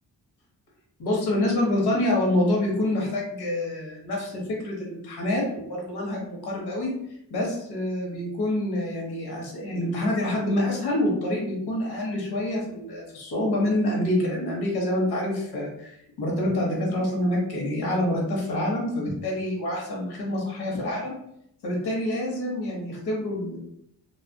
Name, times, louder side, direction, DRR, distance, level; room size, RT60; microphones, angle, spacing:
voice 1, 1.0-6.9 7.3-21.1 21.6-23.6, left 1 dB, 65° left, -2 dB, 1.1 m, -27 dB
2.5 x 2.4 x 2.2 m, 0.75 s
hypercardioid pair, 40°, 41 cm